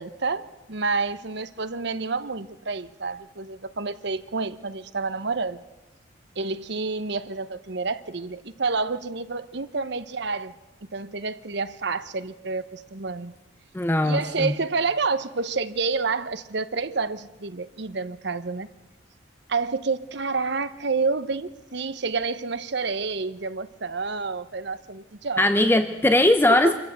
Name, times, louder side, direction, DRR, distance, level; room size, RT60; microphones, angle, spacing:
voice 1, 0.0-5.6 6.4-10.5 10.9-13.3 14.0-18.7 19.5-25.4 26.5-26.8, right 4 dB, 60° right, 12 dB, 0.9 m, -29 dB
voice 2, 13.7-14.5 25.4-26.8, left 1 dB, 10° left, 9 dB, 0.7 m, -20 dB
25.0 x 14.5 x 8.1 m, 1.1 s
head